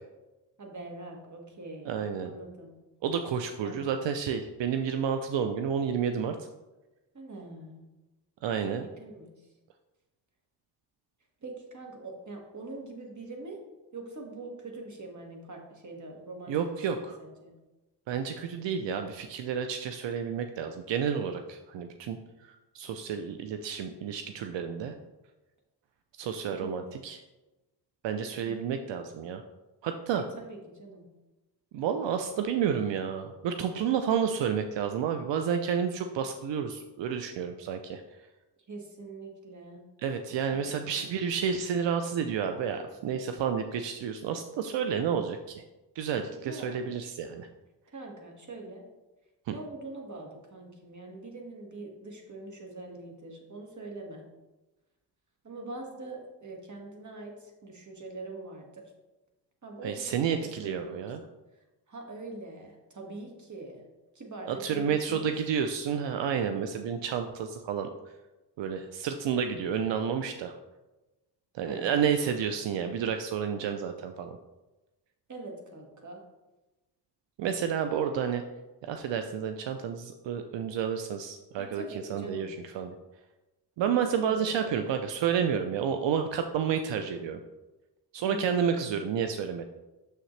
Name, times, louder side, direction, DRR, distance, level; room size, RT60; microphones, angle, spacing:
voice 1, 0.6-2.8 3.6-3.8 7.1-7.8 8.8-9.3 11.4-13.6 13.9-16.8 17.2-17.5 26.5-26.8 28.4-29.0 30.2-31.0 38.7-39.8 40.3-41.3 46.3-46.8 47.9-48.8 49.5-54.2 55.4-58.8 59.6-61.1 61.9-63.8 64.1-65.3 71.6-71.9 75.3-76.2 81.6-82.5 84.2-84.7 88.2-89.0, right 2 dB, 40° right, 1 dB, 1.8 m, -43 dB
voice 2, 1.9-2.3 3.0-6.5 8.4-8.9 16.5-17.2 18.1-22.2 22.4-24.9 26.2-27.2 28.0-29.4 29.8-30.3 31.7-38.0 40.0-45.6 46.0-47.5 59.8-61.2 64.5-67.9 68.6-70.5 71.5-74.4 77.4-78.4 78.8-81.8 82.1-82.9 83.8-87.4 88.1-89.6, right 7 dB, 80° right, 7 dB, 0.6 m, -30 dB
6.9 x 6.5 x 3.2 m, 1.1 s
cardioid pair, 70°, 43 cm